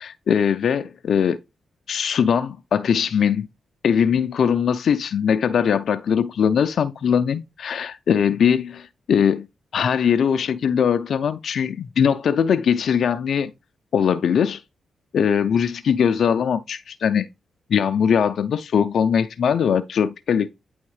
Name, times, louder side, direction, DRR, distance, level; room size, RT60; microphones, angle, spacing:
voice 1, 0.0-1.4 1.9-3.5 3.8-9.5 9.7-13.5 13.9-14.6 15.1-17.3 17.7-20.5, left 7 dB, 70° left, 0.4 m, -21 dB
9.4 x 3.5 x 3.2 m
supercardioid pair, 50°, 0 cm